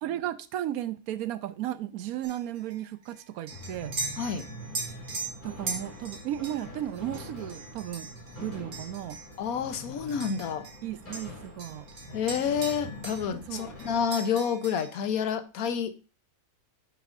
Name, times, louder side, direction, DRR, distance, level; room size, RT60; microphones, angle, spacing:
voice 1, 0.0-3.9 5.4-9.2 10.8-11.9 13.5-13.7, right 12 dB, 85° right, 1.1 m, -35 dB
sound 1, 2.2-10.8 11.1-13.3 13.5-15.1, right 3 dB, 70° right, 1.9 m, -40 dB
sound 2, 3.5-14.0, left 1 dB, 35° left, 2.8 m, -44 dB
voice 2, 9.4-10.6 12.1-16.1, left 7 dB, 85° left, 1.3 m, -29 dB
8.9 x 7.1 x 2.5 m
omnidirectional pair, 1.5 m